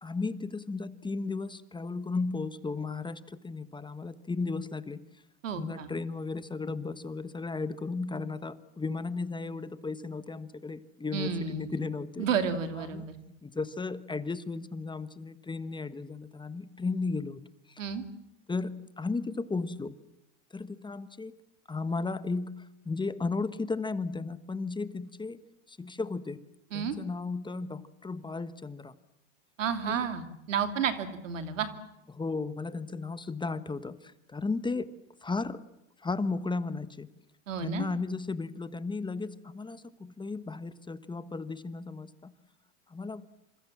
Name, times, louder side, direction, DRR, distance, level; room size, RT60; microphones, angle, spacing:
voice 1, 0.0-5.0 5.5-12.3 12.7-13.1 13.4-17.4 17.7-17.8 18.5-19.9 20.5-21.4 21.7-25.4 25.7-26.4 26.7-28.9 29.9-30.1 32.1-34.9 35.2-35.6 36.0-37.1 37.6-42.3 42.9-43.2, left 3 dB, 10° left, 13 dB, 1.3 m, -35 dB
voice 2, 5.4-5.9 11.1-11.8 12.2-13.1 17.8-18.0 26.7-26.9 29.6-31.7 37.5-37.9, right 6 dB, 90° right, 8 dB, 2.9 m, -31 dB
27.5 x 25.5 x 7.5 m, 0.87 s
hypercardioid pair, 100°, 37 cm